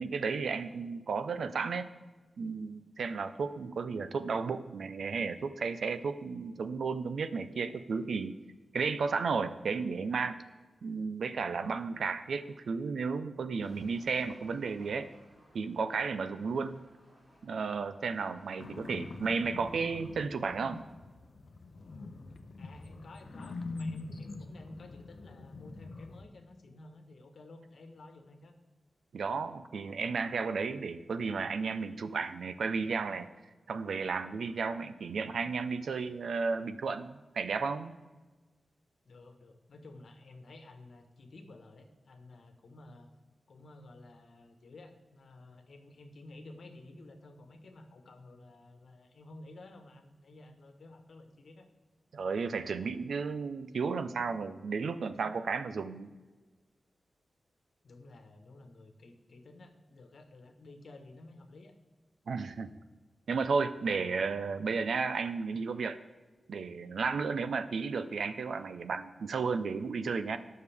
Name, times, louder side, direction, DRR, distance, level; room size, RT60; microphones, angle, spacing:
voice 1, 0.0-1.9 2.4-8.3 8.7-10.4 10.8-15.1 15.5-16.8 17.4-20.8 29.1-33.3 33.7-38.0 52.1-56.1 62.3-62.7 63.3-66.0 66.5-70.4, right 5 dB, 85° right, 11 dB, 0.7 m, -33 dB
sound 1, 13.6-20.9, right 1 dB, 30° right, 3.1 m, -62 dB
sound 2, 18.6-26.2, left 3 dB, 45° left, 0.7 m, -44 dB
voice 2, 22.6-28.5 39.0-43.1 43.5-51.7 57.8-61.7, left 2 dB, 65° left, 6 dB, 1.4 m, -52 dB
18.5 x 6.6 x 3.6 m, 1.3 s
wide cardioid pair, 175°, 0 cm